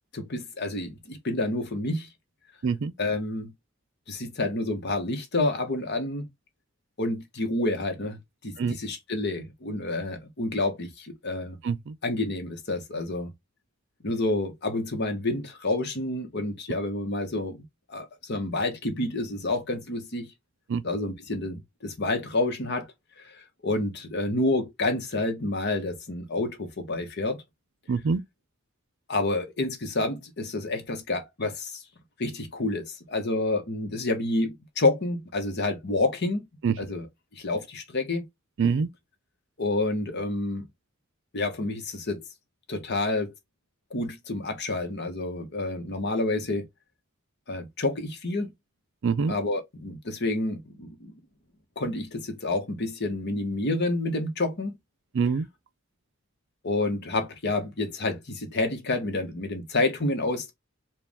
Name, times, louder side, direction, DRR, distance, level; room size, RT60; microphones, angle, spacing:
voice 1, 0.1-2.1 3.0-3.5 4.1-6.3 7.0-8.2 8.4-11.6 12.0-13.3 14.0-20.3 20.8-27.4 29.1-31.8 32.2-36.5 36.8-37.1 37.3-38.3 39.6-40.7 41.3-42.2 42.7-43.3 43.9-46.7 47.5-48.5 49.3-51.1 51.8-54.8 56.6-60.5, left 2 dB, 55° left, 1.1 m, -29 dB
voice 2, 11.6-11.9 20.7-20.8 27.9-28.2 36.6-36.7 38.6-38.9 49.0-49.3 55.1-55.5, right 5 dB, 60° right, 0.4 m, -25 dB
4.6 x 2.4 x 3.5 m
head